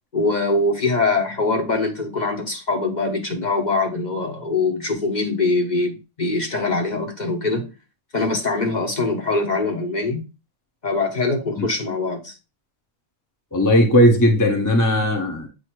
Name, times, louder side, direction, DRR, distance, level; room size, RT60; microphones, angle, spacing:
voice 1, 0.1-7.7 8.1-10.3 10.8-12.3, left 3 dB, 40° left, 1.3 m, -23 dB
voice 2, 13.5-15.5, equal, 20° left, 0.9 m, -17 dB
8.3 x 2.8 x 4.6 m
omnidirectional pair, 1.2 m